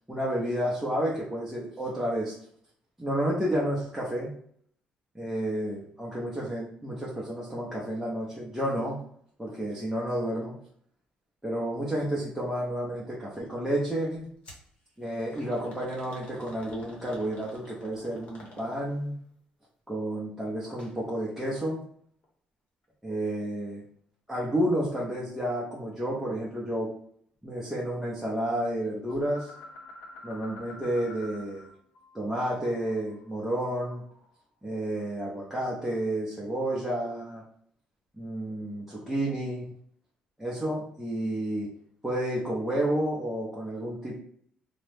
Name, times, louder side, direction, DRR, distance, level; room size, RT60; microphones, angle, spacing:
voice 1, 0.1-2.4 3.0-4.3 5.1-9.0 9.4-10.5 11.4-14.3 15.0-19.1 19.9-21.8 23.0-23.8 24.3-26.9 27.4-29.5 30.2-31.6 32.1-34.0 34.6-37.4 38.1-39.7 40.4-41.7 42.0-44.2, right 1 dB, 5° right, -6 dB, 0.5 m, -31 dB
sound 1, 14.4-14.7 15.3-19.0 20.6-20.9 21.3-21.4 22.2-22.3, left 1 dB, 45° left, 0.9 m, -49 dB
sound 2, 29.1-31.7 32.0-34.3, left 2 dB, 75° left, 0.5 m, -48 dB
2.7 x 2.0 x 3.2 m, 0.62 s
cardioid pair, 155°, 3 cm